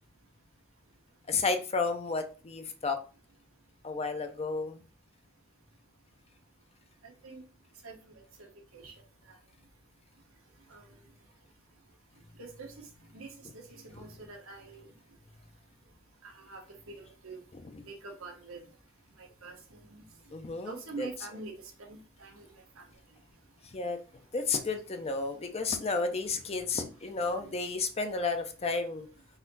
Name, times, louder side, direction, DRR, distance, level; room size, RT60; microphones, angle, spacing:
voice 1, 1.3-3.0 3.8-4.8 17.5-17.8 20.3-21.1 23.6-24.0 24.3-29.1, left 4 dB, 30° left, 6 dB, 0.6 m, -32 dB
voice 2, 7.0-7.4 7.8-8.0 8.4-8.5 8.7-8.9 10.7-10.8 12.4-12.7 13.1-13.3 13.5-14.8 16.2-16.6 16.9-17.4 17.8-18.6 19.2-19.6 20.6-21.5 21.9-22.4 22.8-22.9 27.4-27.5, right 3 dB, 80° right, 2 dB, 1.2 m, -44 dB
4.1 x 2.7 x 3.9 m, 0.35 s
head